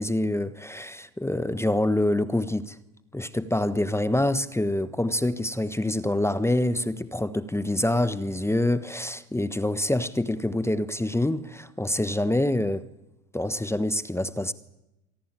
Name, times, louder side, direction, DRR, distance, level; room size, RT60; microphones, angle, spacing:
voice 1, 0.0-2.8 3.1-12.8 13.3-14.5, left 1 dB, 5° left, 1.2 m, -26 dB
26.5 x 19.0 x 9.0 m
hypercardioid pair, 80°, 42 cm